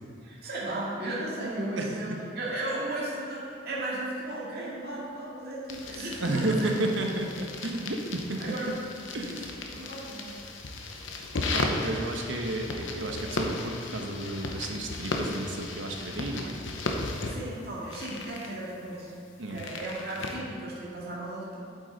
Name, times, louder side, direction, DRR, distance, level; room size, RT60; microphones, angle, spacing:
voice 1, 0.2-6.7 8.4-8.7 9.0-9.4 9.7-10.4 11.3-11.4 17.3-19.1 19.5-21.6, right 1 dB, 55° right, -7 dB, 2.2 m, -35 dB
voice 2, 1.8-2.2 6.2-8.4 9.1-9.4 11.4-16.6 19.4-19.6, right 2 dB, 80° right, 2 dB, 1.1 m, -32 dB
sound 1, 5.7-20.4, left 2 dB, 85° left, 0.9 m, -36 dB
8.3 x 8.0 x 4.1 m, 2.4 s
head